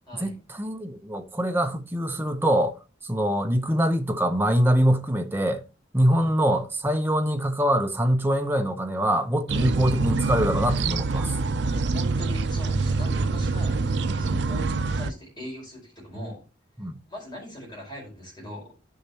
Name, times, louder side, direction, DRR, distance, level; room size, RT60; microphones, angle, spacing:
voice 1, 0.1-2.7 3.0-5.6 5.9-11.4 16.8-17.0, equal, 10° right, 0.8 m, -24 dB
sound 1, 9.5-15.1, right 3 dB, 70° right, 0.5 m, -25 dB
voice 2, 11.7-16.4 17.1-18.8, equal, 25° left, 4.6 m, -40 dB
9.8 x 6.6 x 2.9 m
head